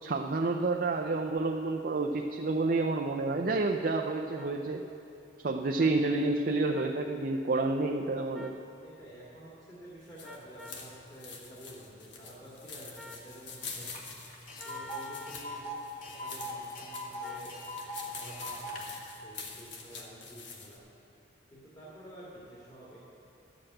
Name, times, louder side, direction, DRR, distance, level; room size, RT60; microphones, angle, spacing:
voice 1, 0.0-4.9 5.4-8.6, right 3 dB, 50° right, 3 dB, 0.5 m, -29 dB
sound 1, 4.4-4.5 5.8-5.9 6.7-7.0 8.3-8.6 10.2-10.8 13.0-13.3 14.6-15.4 17.2-17.5, left 3 dB, ahead, 0.6 m, -49 dB
voice 2, 8.8-13.9 14.5-15.7 16.0-20.8 21.5-23.0, right 1 dB, 25° left, -8 dB, 2.1 m, -50 dB
sound 2, 10.0-20.8, left 4 dB, 70° left, 1.4 m, -46 dB
Tick, 13.9-14.0 14.3-18.8, equal, 45° left, 1.5 m, -40 dB
11.5 x 7.7 x 7.8 m, 2.8 s
head